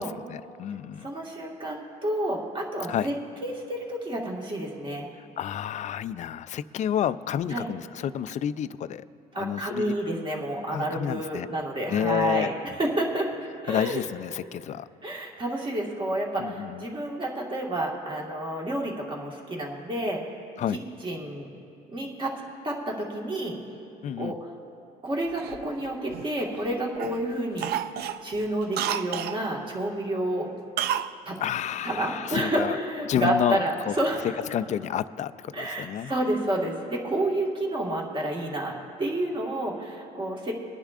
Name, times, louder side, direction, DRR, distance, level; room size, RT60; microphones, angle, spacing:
voice 1, 0.0-1.1 2.9-3.1 5.2-9.1 9.4-9.9 10.7-11.5 11.9-12.5 13.7-14.9 16.4-16.8 20.6-20.8 24.0-24.4 31.4-32.8 33.1-33.9 34.5-36.1, left 9 dB, 45° left, 15 dB, 0.4 m, -30 dB
voice 2, 1.0-3.1 3.4-5.1 7.5-7.7 9.3-12.5 12.8-13.3 13.6-14.0 15.0-20.2 21.0-21.5 21.9-22.3 22.6-23.6 24.2-24.4 25.0-27.7 28.2-30.5 31.2-31.3 31.8-34.3 35.5-38.7 39.0-40.5, right 1 dB, 30° right, -1 dB, 1.6 m, -29 dB
Cough, 25.4-26.6 27.0-27.2 27.6-29.4 30.8-31.1 31.4-31.5, right 10 dB, 70° right, 0.4 m, -30 dB
24.0 x 10.0 x 2.4 m, 2.8 s
cardioid pair, 110°, 17 cm